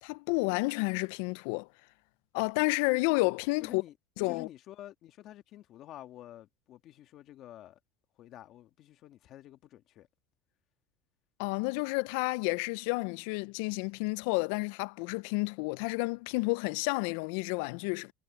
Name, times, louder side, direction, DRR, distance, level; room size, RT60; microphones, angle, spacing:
voice 1, 0.0-1.7 2.3-3.8 4.2-4.5 11.4-18.1, left 26 dB, 70° left, 0.3 m, -30 dB
voice 2, 3.6-3.9 4.3-7.8 8.2-10.1, left 12 dB, 40° left, 1.6 m, -49 dB
cardioid pair, 155°, 0 cm